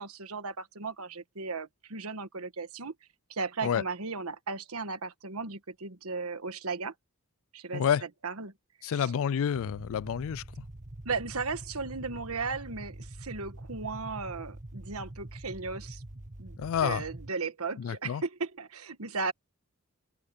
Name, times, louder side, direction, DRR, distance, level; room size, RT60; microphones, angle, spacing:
voice 1, 0.0-2.9 3.3-6.9 7.5-8.5 8.9-9.1 11.0-16.0 16.4-19.3, right 4 dB, 80° right, 1.5 m, -36 dB
voice 2, 7.7-8.0 8.8-10.4 16.6-17.0 17.8-18.2, left 8 dB, 65° left, 0.3 m, -29 dB
sound 1, 9.5-17.3, right 1 dB, 35° right, 1.9 m, -44 dB
open air
head